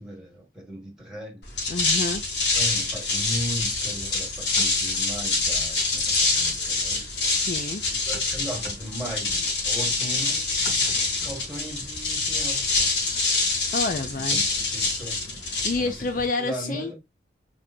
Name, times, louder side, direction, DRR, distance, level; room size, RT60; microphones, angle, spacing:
voice 1, 0.0-1.5 2.5-7.0 7.9-10.4 11.2-12.7 14.2-15.2 15.8-15.9 16.4-16.9, equal, 5° right, 2.1 m, -37 dB
sound 1, 1.4-16.3, left 3 dB, 80° left, 3.0 m, -26 dB
voice 2, 1.7-2.2 7.3-7.8 13.7-14.4 15.6-16.9, left 3 dB, 50° left, 0.5 m, -28 dB
5.2 x 3.6 x 2.7 m
head